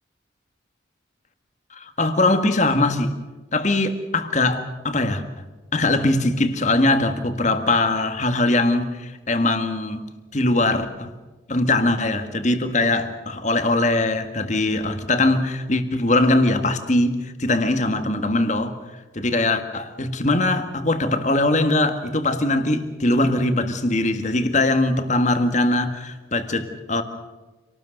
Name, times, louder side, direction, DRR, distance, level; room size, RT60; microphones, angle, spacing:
voice 1, 1.7-3.1 3.5-5.2 5.7-11.1 11.5-18.7 19.1-27.0, left 2 dB, 40° left, 8 dB, 1.8 m, -21 dB
27.0 x 19.0 x 6.6 m, 1.2 s
head